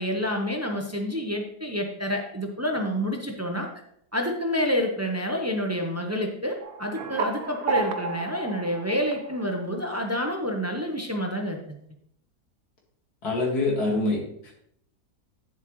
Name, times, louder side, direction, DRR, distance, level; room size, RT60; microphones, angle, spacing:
voice 1, 0.0-3.7 4.1-11.6, equal, 15° right, 2 dB, 0.5 m, -28 dB
sound 1, 6.6-9.9, right 5 dB, 70° right, 1.2 m, -32 dB
voice 2, 13.2-14.5, left 2 dB, 70° left, 0 dB, 2.5 m, -25 dB
9.0 x 7.2 x 3.1 m, 0.71 s
omnidirectional pair, 1.7 m